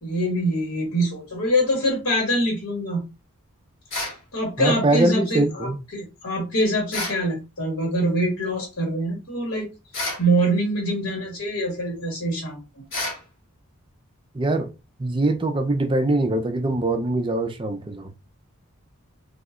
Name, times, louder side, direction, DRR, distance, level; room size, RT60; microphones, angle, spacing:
voice 1, 0.0-3.0 4.3-9.7 10.2-12.8, right 1 dB, 85° left, 1.6 m, -24 dB
sound 1, 3.9-4.2 6.9-7.2 9.9-10.3 12.9-13.2, left 2 dB, 60° left, 1.6 m, -29 dB
voice 2, 4.6-5.8 14.3-14.7 15.0-18.1, right 2 dB, 20° right, 0.4 m, -23 dB
2.7 x 2.2 x 3.6 m
head